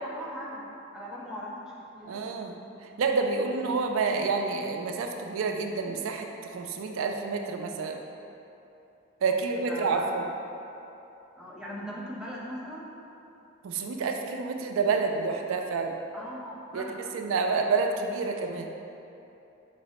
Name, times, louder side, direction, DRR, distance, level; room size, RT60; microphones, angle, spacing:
voice 1, 0.0-2.2 9.3-9.4 9.7-10.2 11.4-12.9 16.1-17.0, equal, 5° right, -5 dB, 0.4 m, -40 dB
voice 2, 2.1-2.6 3.0-8.0 9.2-10.3 13.6-15.9 16.7-16.9 17.1-18.7, right 4 dB, 70° right, 4 dB, 0.3 m, -28 dB
4.5 x 2.0 x 4.2 m, 2.9 s
head